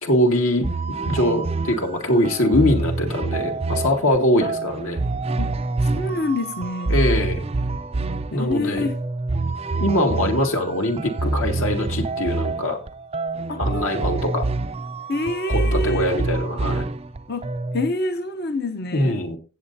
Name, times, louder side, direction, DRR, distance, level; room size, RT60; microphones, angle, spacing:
voice 1, 0.0-5.0 6.9-7.5 8.3-8.8 9.8-12.8 13.6-14.5 15.5-16.9 18.9-19.4, left 1 dB, 70° left, 2.1 m, -22 dB
sound 1, 0.6-17.9, right 3 dB, 25° right, 0.4 m, -26 dB
voice 2, 5.8-7.0 8.3-9.0 13.5-14.3 15.1-16.1 17.3-19.2, left 2 dB, 45° left, 0.8 m, -27 dB
16.5 x 7.8 x 2.7 m
head